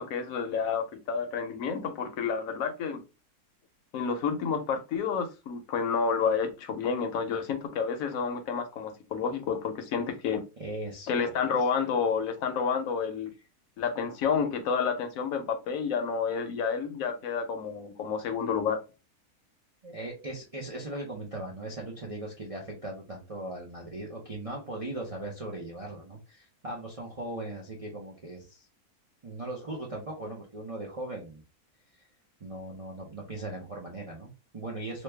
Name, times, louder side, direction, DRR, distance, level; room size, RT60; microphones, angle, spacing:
voice 1, 0.0-3.0 3.9-10.4 11.1-13.3 13.8-18.8, left 6 dB, 70° left, 1.0 m, -30 dB
voice 2, 10.6-11.3 19.8-28.7 29.2-31.4 32.0-32.1 32.4-35.0, right 2 dB, 40° right, 0.5 m, -39 dB
3.0 x 2.2 x 3.3 m
omnidirectional pair, 1.6 m